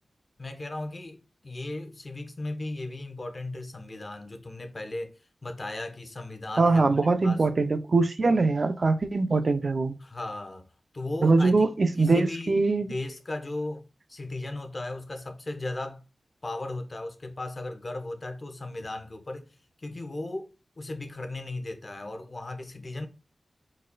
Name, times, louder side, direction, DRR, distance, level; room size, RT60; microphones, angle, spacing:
voice 1, 0.4-7.4 8.3-8.4 10.0-10.7 10.9-11.7 12.0-12.6 12.9-16.0 16.4-20.5 20.8-23.1, left 2 dB, 35° left, 1.0 m, -36 dB
voice 2, 6.6-10.0 11.2-12.9, right 3 dB, 55° right, 0.6 m, -22 dB
4.9 x 4.2 x 2.3 m
wide cardioid pair, 110°, 0 cm